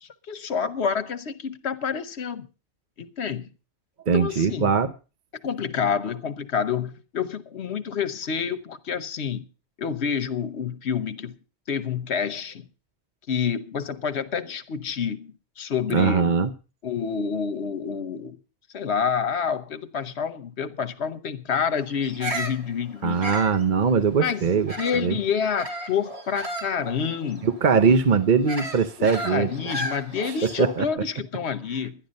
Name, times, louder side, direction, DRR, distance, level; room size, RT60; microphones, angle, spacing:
voice 1, 0.0-2.5 3.0-3.5 4.1-4.7 5.4-9.5 9.8-11.3 11.7-12.6 13.3-16.3 16.8-18.4 18.7-23.3 24.2-24.5 24.8-27.5 29.0-31.9, left 7 dB, 70° left, 1.2 m, -28 dB
voice 2, 4.1-4.9 15.9-16.5 23.0-25.2 27.4-29.5 30.2-30.9, right 6 dB, 50° right, 0.9 m, -21 dB
Bird vocalization bird call bird song, 22.0-25.1 25.5-30.8, right 1 dB, 30° right, 2.1 m, -35 dB
12.0 x 10.5 x 5.3 m
omnidirectional pair, 1.2 m